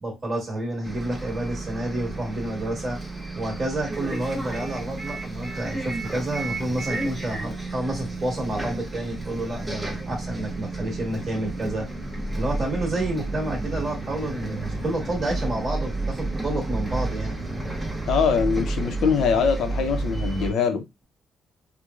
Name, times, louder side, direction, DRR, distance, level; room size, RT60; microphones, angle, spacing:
voice 1, 0.0-3.0 3.3-11.9 12.3-17.4, right 1 dB, 35° right, 1.4 m, -29 dB
Bus, 0.8-20.5, right 2 dB, 15° right, 0.8 m, -31 dB
sound 1, 9.0-17.9, right 2 dB, 50° right, 0.6 m, -39 dB
voice 2, 18.1-20.8, left 6 dB, 75° left, 0.5 m, -23 dB
3.0 x 2.1 x 2.3 m
cardioid pair, 90°, 0 cm